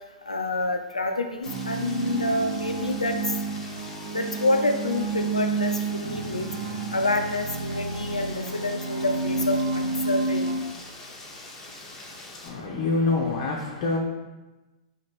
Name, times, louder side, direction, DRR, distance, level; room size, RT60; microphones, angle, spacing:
voice 1, 0.3-3.2 4.1-6.5 6.9-10.5, left 2 dB, 90° left, 5 dB, 0.5 m, -27 dB
Rain, 1.4-12.5, left 2 dB, 15° left, 0.8 m, -44 dB
sound 1, 1.5-10.6, right 3 dB, 65° right, 0.9 m, -30 dB
voice 2, 12.4-14.0, left 3 dB, 50° left, -2 dB, 0.7 m, -26 dB
4.2 x 2.9 x 4.3 m, 1.1 s
figure-of-eight pair, 110°, 4 cm